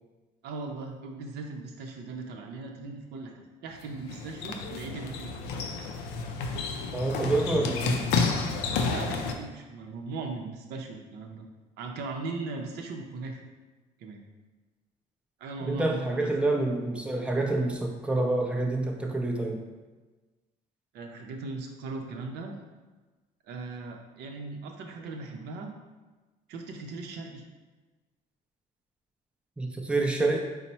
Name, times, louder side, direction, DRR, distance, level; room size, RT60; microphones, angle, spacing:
voice 1, 0.4-5.3 8.5-11.4 11.8-13.4 14.0-14.2 15.4-16.3 20.9-22.6 23.5-25.7 26.5-27.4, right 3 dB, 80° right, 3 dB, 0.6 m, -38 dB
sound 1, 3.7-9.3, left 4 dB, 90° left, 0.4 m, -31 dB
voice 2, 6.9-8.1 15.6-19.6 29.6-30.4, right 2 dB, 5° right, 1 dB, 0.5 m, -27 dB
4.3 x 2.1 x 4.1 m, 1.3 s
cardioid pair, 110°, 17 cm